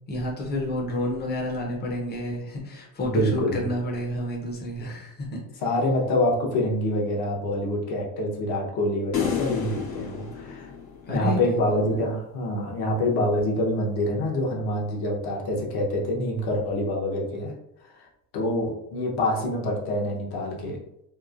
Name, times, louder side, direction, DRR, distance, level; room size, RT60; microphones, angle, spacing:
voice 1, 0.1-5.4 11.1-11.4, left 1 dB, 20° left, -1 dB, 0.6 m, -30 dB
voice 2, 3.0-3.7 5.6-10.7 11.1-17.5 18.0-18.1 18.3-20.8, left 1 dB, 55° left, -2 dB, 0.9 m, -26 dB
sound 1, 9.1-11.5, left 7 dB, 75° left, 1.3 m, -30 dB
3.1 x 2.0 x 2.4 m, 0.80 s
cardioid pair, 120°, 45 cm